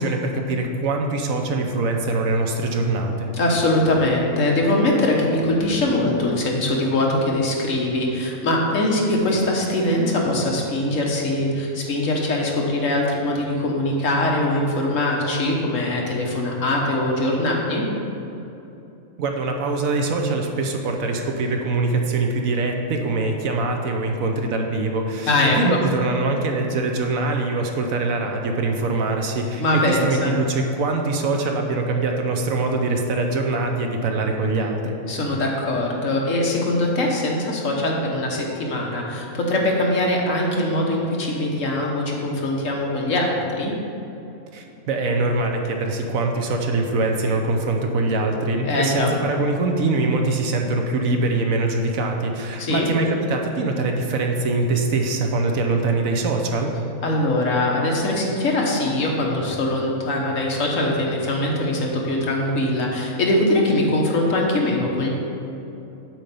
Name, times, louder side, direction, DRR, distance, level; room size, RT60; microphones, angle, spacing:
voice 1, 0.0-3.3 19.2-35.0 44.5-56.8, right 3 dB, 70° right, 3 dB, 1.1 m, -23 dB
voice 2, 3.3-17.8 25.3-25.8 29.6-30.3 35.1-43.7 48.6-49.1 52.6-52.9 57.0-65.1, left 1 dB, 60° left, -1 dB, 1.4 m, -22 dB
7.7 x 4.4 x 6.8 m, 2.9 s
omnidirectional pair, 1.5 m